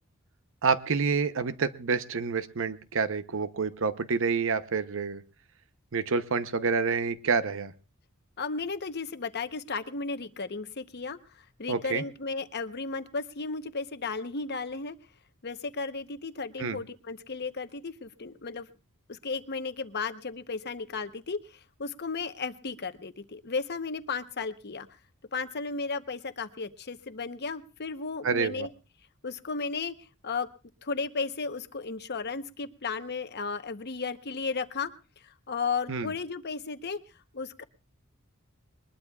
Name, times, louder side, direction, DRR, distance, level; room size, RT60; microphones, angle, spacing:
voice 1, 0.6-5.2 5.9-7.7 11.7-12.0 16.6-16.8 28.2-28.7 35.9-36.1, right 5 dB, 65° right, 12 dB, 0.8 m, -28 dB
voice 2, 8.4-15.0 15.4-18.7 19.1-24.9 25.3-28.7 29.2-30.5 30.8-34.9 35.2-37.0 37.3-37.6, left 4 dB, 50° left, 10 dB, 0.9 m, -34 dB
21.5 x 20.5 x 2.4 m, 0.34 s
head